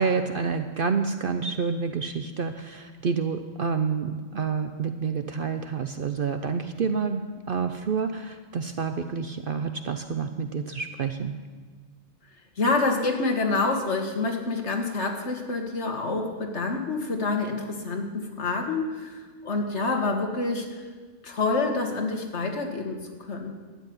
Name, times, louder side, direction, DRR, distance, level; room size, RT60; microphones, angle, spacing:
voice 1, 0.0-11.4, right 5 dB, 55° right, 8 dB, 0.8 m, -28 dB
voice 2, 12.6-20.8 21.2-23.5, left 3 dB, 65° left, 3 dB, 2.1 m, -27 dB
13.0 x 8.2 x 9.5 m, 1.4 s
omnidirectional pair, 1.3 m